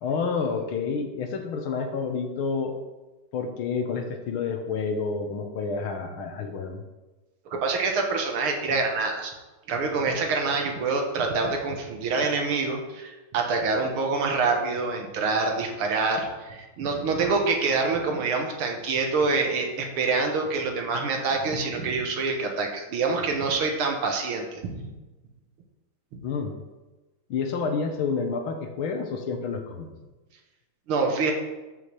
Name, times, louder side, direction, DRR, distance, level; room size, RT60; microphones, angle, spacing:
voice 1, 0.0-2.7 3.3-6.8 26.2-26.5 27.3-29.9, left 5 dB, 80° left, 5 dB, 1.8 m, -29 dB
voice 2, 7.5-9.3 9.7-24.9 26.1-26.2 30.9-31.3, right 4 dB, 85° right, 2 dB, 2.1 m, -26 dB
13.0 x 5.7 x 3.3 m, 1.1 s
omnidirectional pair, 2.3 m